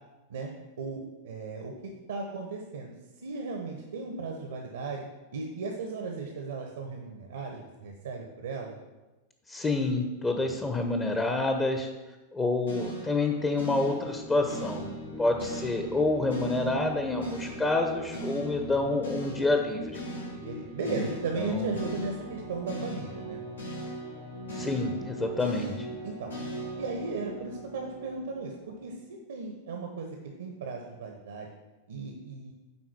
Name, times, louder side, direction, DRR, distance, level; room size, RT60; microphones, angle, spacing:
voice 1, 0.8-3.0 3.2-5.1 5.3-8.7 15.0-15.2 20.3-23.4 26.0-26.3 26.8-28.9 29.3-31.5 31.9-32.5, right 4 dB, 65° right, 2 dB, 1.0 m, -36 dB
voice 2, 9.5-11.9 12.3-14.9 15.2-20.0 20.9-21.0 21.4-21.7 24.5-25.9, left 2 dB, 15° left, 4 dB, 0.9 m, -28 dB
sound 1, 12.7-28.9, right 1 dB, 80° left, 1.8 m, -39 dB
9.8 x 3.9 x 6.0 m, 1.1 s
figure-of-eight pair, 90°, 0 cm